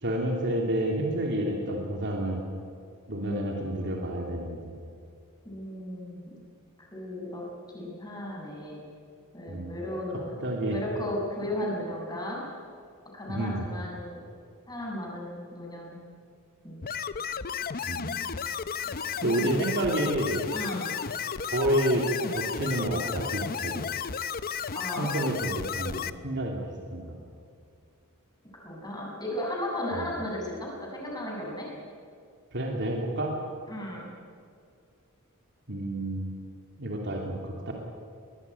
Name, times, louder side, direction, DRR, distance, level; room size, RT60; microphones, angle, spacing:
voice 1, 0.0-2.4 3.1-4.7 9.5-9.8 10.4-10.8 13.3-13.7 17.9-18.1 19.2-20.4 21.5-23.9 25.0-26.6 26.9-27.1 32.5-33.3 35.7-36.3 36.8-37.7, right 1 dB, 55° right, 0 dB, 3.0 m, -29 dB
voice 2, 3.2-3.5 3.8-4.0 5.4-6.3 6.8-7.4 7.7-8.8 9.3-10.3 10.7-12.4 13.1-14.2 14.7-16.0 16.6-16.9 18.1-18.2 19.3-19.6 20.5-20.9 24.7-25.3 28.6-31.7 33.7-34.1, left 1 dB, 20° left, -2 dB, 6.7 m, -35 dB
sound 1, 16.8-26.1, left 7 dB, 45° left, 0.7 m, -33 dB
22.0 x 19.5 x 9.7 m, 2.3 s
head